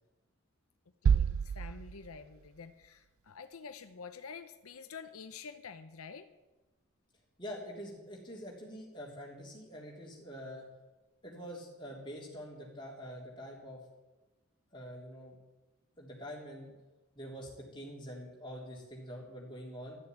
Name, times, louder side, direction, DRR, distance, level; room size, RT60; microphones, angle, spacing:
voice 1, 1.0-6.3, left 5 dB, 85° left, 9 dB, 0.7 m, -48 dB
sound 1, 1.1-2.9, right 7 dB, 75° right, 0.3 m, -30 dB
voice 2, 7.4-10.7 11.2-13.8 14.7-15.4 16.0-16.7 17.1-20.0, equal, 20° left, -3 dB, 3.5 m, -45 dB
13.0 x 6.8 x 9.3 m, 1.1 s
head